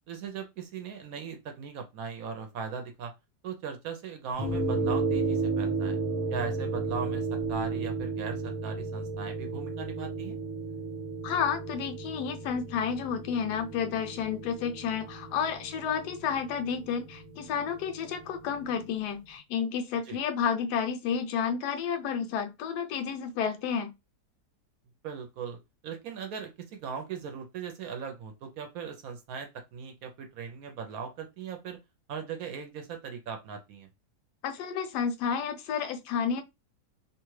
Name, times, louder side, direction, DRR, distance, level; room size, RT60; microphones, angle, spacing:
voice 1, 0.1-3.1 3.4-6.0 6.3-10.4 20.1-20.2 25.0-25.6 25.8-31.8 32.1-33.9, right 6 dB, 70° right, 0.9 m, -39 dB
sound 1, 4.4-18.9, right 3 dB, 20° right, 0.6 m, -34 dB
voice 2, 11.2-23.9 34.4-36.4, left 7 dB, 80° left, 1.1 m, -31 dB
2.8 x 2.3 x 3.1 m
omnidirectional pair, 1.8 m